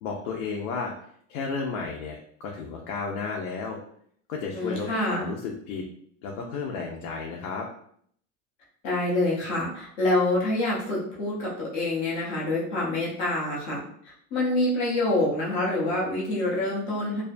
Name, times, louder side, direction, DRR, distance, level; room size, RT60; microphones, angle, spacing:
voice 1, 0.0-0.9 1.3-3.8 4.3-5.9 6.2-7.7, left 5 dB, 80° left, -1 dB, 0.6 m, -33 dB
voice 2, 4.5-5.3 8.8-13.8 14.0-17.2, left 2 dB, 20° left, -5 dB, 0.3 m, -26 dB
2.3 x 2.2 x 2.4 m, 0.64 s
supercardioid pair, 170°, 40 cm